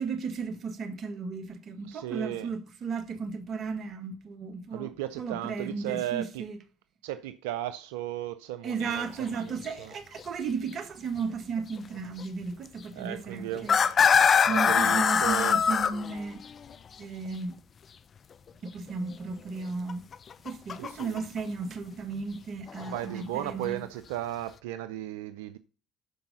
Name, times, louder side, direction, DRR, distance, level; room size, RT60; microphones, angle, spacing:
voice 1, 0.0-6.6 8.6-13.7 14.5-16.4 17.0-17.6 18.6-20.0 20.4-23.8, right 5 dB, 50° right, 1.7 m, -35 dB
voice 2, 1.8-2.5 4.7-6.4 7.0-9.9 12.9-14.0 14.4-15.6 20.8-21.2 22.8-25.6, right 13 dB, 85° right, 0.5 m, -36 dB
sound 1, 8.9-9.1 9.5-9.7 10.2-10.3 12.2-12.3 13.5-16.7 19.9-21.4 22.7-23.0, left 6 dB, 45° left, 0.8 m, -23 dB
11.5 x 4.8 x 5.5 m
supercardioid pair, 70°, 0 cm